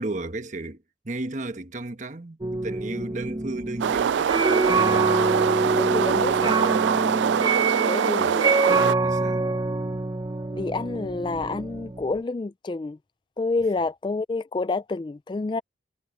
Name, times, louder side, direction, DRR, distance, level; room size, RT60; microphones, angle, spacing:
voice 1, 0.0-5.0 8.2-8.4 9.0-9.6, right 2 dB, 45° right, 1.2 m, -34 dB
sound 1, 2.4-12.2, right 3 dB, 25° right, 0.7 m, -26 dB
sound 2, 3.8-8.9, right 8 dB, 85° right, 0.3 m, -23 dB
voice 2, 5.8-6.8 7.9-8.6 10.5-13.0 13.4-15.6, left 3 dB, 25° left, 0.3 m, -29 dB
head